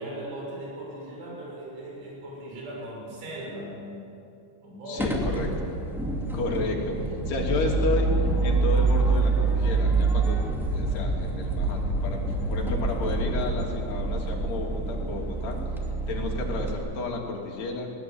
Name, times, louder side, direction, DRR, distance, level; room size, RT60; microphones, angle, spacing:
voice 1, 0.0-4.1 4.6-5.1, right 1 dB, 80° right, -3 dB, 9.0 m, -38 dB
voice 2, 4.9-5.7 6.3-7.0 7.3-8.1 8.4-10.4 10.7-15.6 16.1-17.9, left 3 dB, 60° left, 0 dB, 4.8 m, -31 dB
sound 1, 5.0-16.7, right 3 dB, ahead, 1.0 m, -26 dB
20.5 x 19.0 x 9.6 m, 2.5 s
omnidirectional pair, 5.4 m